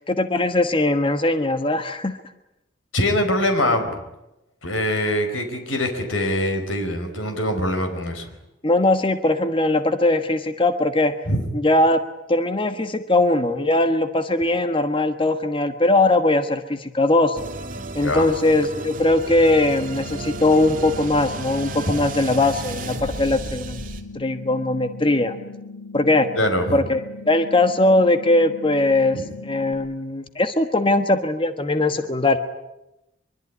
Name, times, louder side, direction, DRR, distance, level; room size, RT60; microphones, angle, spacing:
voice 1, 0.0-2.2 8.6-11.1 11.5-12.0 12.3-17.4 17.9-23.8 24.1-25.4 25.9-26.3 26.7-27.0 27.3-32.4, left 2 dB, 25° left, 9 dB, 1.4 m, -20 dB
voice 2, 2.9-4.0 4.6-8.3 11.3-11.4 18.0-18.3 21.8-21.9 26.4-26.8 29.1-29.2, left 1 dB, 85° left, 6 dB, 4.7 m, -23 dB
sound 1, 17.3-24.0, right 2 dB, 45° right, 2.9 m, -33 dB
sound 2, 19.7-29.7, left 3 dB, 70° left, 5.2 m, -39 dB
24.0 x 23.5 x 9.7 m, 0.91 s
head